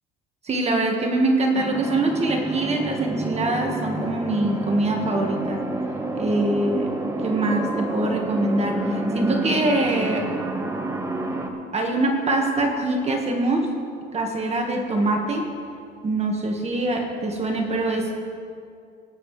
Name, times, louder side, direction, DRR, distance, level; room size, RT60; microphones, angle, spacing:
voice 1, 0.4-5.6 6.1-6.9 7.2-10.3 11.7-13.7 14.1-15.5 16.0-18.1, right 2 dB, 30° right, 2 dB, 1.6 m, -23 dB
sound 1, 1.5-11.5, right 2 dB, 15° right, 1.3 m, -29 dB
Guitar, 8.8-11.8, left 1 dB, 60° right, 3.6 m, -36 dB
20.0 x 9.9 x 3.3 m, 2.3 s
cardioid pair, 110°, 21 cm